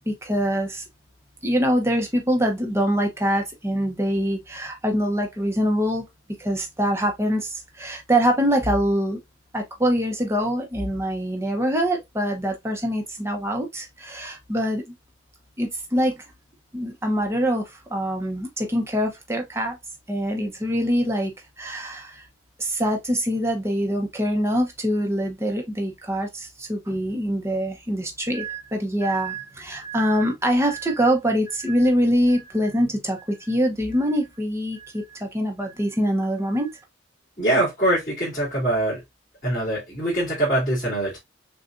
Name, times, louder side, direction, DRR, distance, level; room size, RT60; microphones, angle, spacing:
voice 1, 0.1-0.8 1.4-6.0 6.4-9.2 9.5-14.8 15.6-16.2 16.7-19.8 20.1-21.3 21.6-22.2 22.6-36.7, equal, 15° right, 0.9 m, -24 dB
voice 2, 37.4-39.0 39.4-41.2, right 1 dB, 40° left, 2.9 m, -23 dB
6.5 x 2.4 x 2.6 m
head